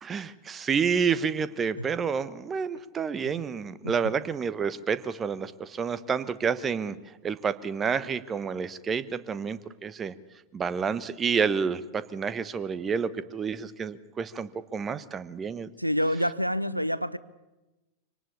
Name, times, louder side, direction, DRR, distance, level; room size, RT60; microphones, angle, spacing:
voice 1, 0.0-7.0 7.2-10.1 10.5-15.7, right 6 dB, 20° right, 1.0 m, -29 dB
voice 2, 15.8-17.2, equal, 90° right, 0.8 m, -27 dB
25.5 x 18.5 x 8.5 m
figure-of-eight pair, 90°, 0 cm